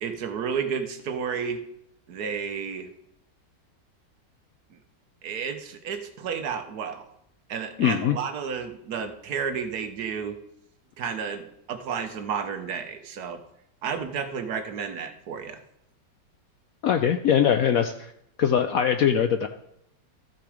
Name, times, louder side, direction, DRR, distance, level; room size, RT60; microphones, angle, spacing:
voice 1, 0.0-1.6 2.1-2.9 5.2-7.1 7.5-10.4 11.0-13.4 13.8-15.6, right 6 dB, 65° right, 7 dB, 1.3 m, -31 dB
voice 2, 7.8-8.2 16.8-18.1 18.4-19.5, left 8 dB, 75° left, 7 dB, 0.8 m, -22 dB
13.5 x 6.2 x 4.9 m, 0.77 s
omnidirectional pair, 2.0 m